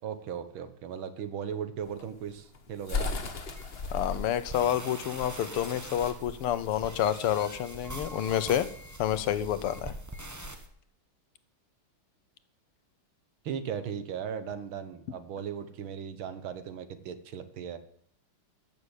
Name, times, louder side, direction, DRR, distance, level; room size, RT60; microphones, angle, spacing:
voice 1, 0.0-3.2 13.4-17.8, right 8 dB, 70° right, 11 dB, 1.8 m, -37 dB
sound 1, 1.8-7.4, left 4 dB, 35° left, 1.1 m, -37 dB
sound 2, 3.5-10.7, right 1 dB, 15° right, 0.6 m, -43 dB
voice 2, 3.9-8.7 9.0-9.9, left 10 dB, 85° left, 13 dB, 1.8 m, -29 dB
14.5 x 6.6 x 8.2 m, 0.65 s
omnidirectional pair, 2.4 m